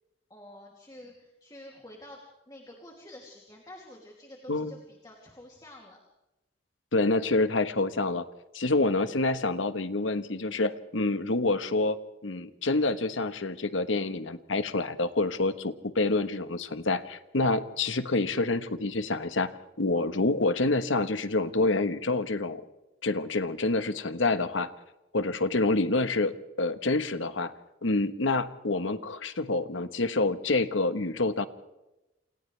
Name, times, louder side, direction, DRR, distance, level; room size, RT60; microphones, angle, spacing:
voice 1, 0.3-2.2 2.5-6.0, left 1 dB, 20° left, -1 dB, 2.8 m, -48 dB
voice 2, 6.9-8.2 8.5-19.5 19.8-22.6 23.0-24.7 25.1-27.5 27.8-31.5, left 2 dB, 90° left, 11 dB, 1.3 m, -27 dB
28.5 x 27.5 x 3.4 m, 0.97 s
head